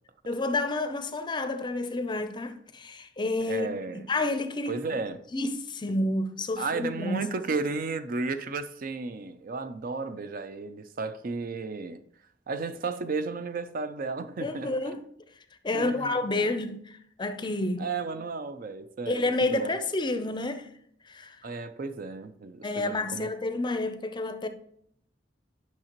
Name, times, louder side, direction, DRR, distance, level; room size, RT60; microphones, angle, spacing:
voice 1, 0.2-3.7 3.9-4.8 5.3-7.2 14.4-15.0 15.6-17.9 19.1-20.7 21.0-21.4 22.6-24.5, left 2 dB, 25° left, 0.5 m, -29 dB
voice 2, 3.4-4.1 4.7-5.2 6.6-12.0 12.5-14.9 15.7-16.5 17.8-19.7 21.4-23.3, right 4 dB, 50° right, 0.5 m, -33 dB
9.1 x 5.7 x 2.9 m
head